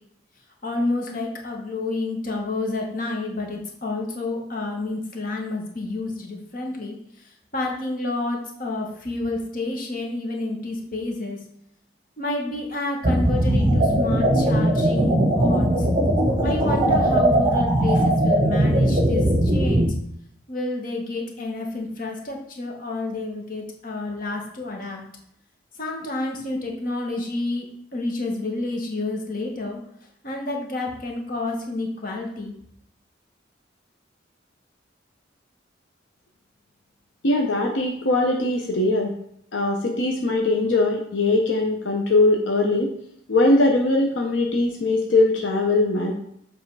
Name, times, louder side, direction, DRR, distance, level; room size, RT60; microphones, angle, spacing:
voice 1, 0.6-11.4 12.2-15.9 16.4-19.9 20.5-25.0 25.8-27.7 27.9-29.8 30.2-32.6, left 2 dB, 45° left, 1 dB, 1.3 m, -29 dB
sound 1, 13.0-19.9, right 1 dB, 25° right, 1.4 m, -19 dB
voice 2, 37.2-39.1 39.5-42.9 43.3-46.1, left 2 dB, 75° left, 1 dB, 0.8 m, -21 dB
7.4 x 3.5 x 4.7 m, 0.70 s
head